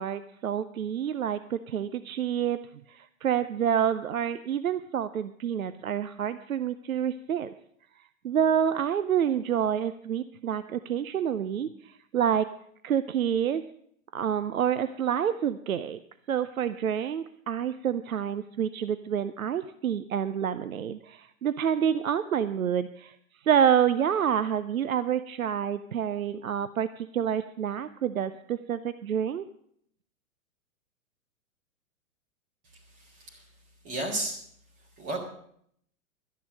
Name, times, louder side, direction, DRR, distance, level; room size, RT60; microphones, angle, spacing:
voice 1, 0.0-2.6 2.9-7.5 8.2-12.5 12.8-13.6 14.1-16.0 16.3-23.2 23.4-29.4, right 9 dB, 75° right, 13 dB, 0.7 m, -28 dB
voice 2, 32.9-33.4 33.8-34.4 35.0-35.2, right 2 dB, 30° right, 0 dB, 2.9 m, -33 dB
12.5 x 10.0 x 6.4 m, 0.67 s
figure-of-eight pair, 105°, 42 cm